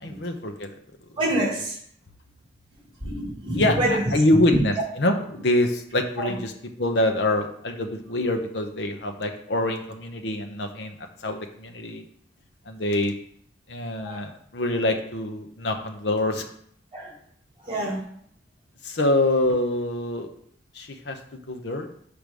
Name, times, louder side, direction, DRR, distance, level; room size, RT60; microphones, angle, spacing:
voice 1, 0.0-0.7 3.5-6.5 6.8-12.0 12.7-13.1 13.7-16.5 18.8-20.3 20.7-21.9, left 1 dB, 65° left, 4 dB, 0.9 m, -25 dB
voice 2, 1.2-1.8 3.0-4.0 4.5-4.6 6.2-6.4 14.0-14.2 16.9-17.1 17.6-18.0, right 1 dB, 25° right, -2 dB, 2.3 m, -26 dB
6.2 x 5.0 x 5.3 m, 0.65 s
head